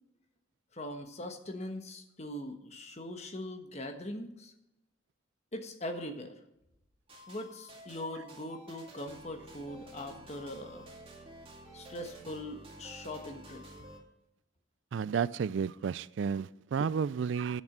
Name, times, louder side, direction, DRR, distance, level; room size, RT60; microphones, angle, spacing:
voice 1, 0.7-4.5 5.5-6.3 7.3-10.9 11.7-13.6, left 1 dB, 35° left, 1.3 m, -41 dB
sound 1, 7.1-14.0, right 1 dB, 30° right, 2.2 m, -51 dB
voice 2, 14.9-17.6, right 6 dB, 65° right, 0.3 m, -32 dB
8.9 x 6.9 x 7.9 m
head